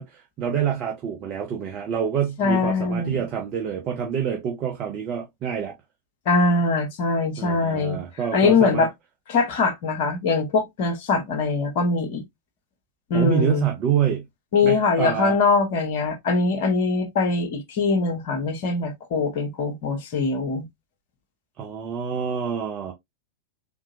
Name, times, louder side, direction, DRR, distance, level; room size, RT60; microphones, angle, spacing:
voice 1, 0.0-5.7 7.4-8.9 13.1-14.3 14.6-15.3 21.6-22.9, right 8 dB, 35° right, 0.8 m, -27 dB
voice 2, 2.4-3.2 6.3-8.0 8.3-8.9 9.3-12.2 13.1-13.7 14.5-20.7, left 4 dB, 50° left, 1.0 m, -22 dB
3.6 x 2.8 x 2.6 m
figure-of-eight pair, 90°, 0 cm